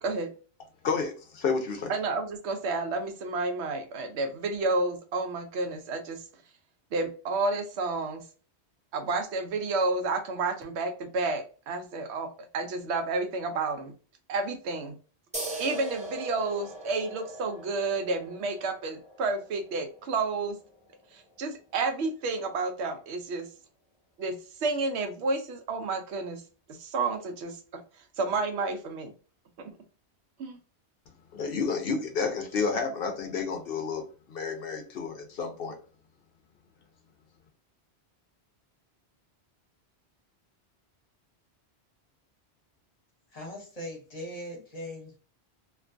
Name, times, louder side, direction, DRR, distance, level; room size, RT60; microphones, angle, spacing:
voice 1, 0.8-1.9 31.3-35.7, left 5 dB, 65° left, 0.7 m, -30 dB
voice 2, 1.9-6.2 6.9-8.2 8.9-12.3 12.5-13.9 14.3-15.0 15.6-20.6 21.1-23.5 24.2-26.4 26.8-27.8 28.2-29.1 29.6-29.7 30.4-30.6, right 3 dB, 80° right, 0.9 m, -30 dB
sound 1, 15.3-22.5, right 2 dB, 10° right, 0.4 m, -42 dB
voice 3, 43.3-45.2, left 1 dB, 35° left, 0.9 m, -40 dB
2.4 x 2.2 x 2.4 m
omnidirectional pair, 1.1 m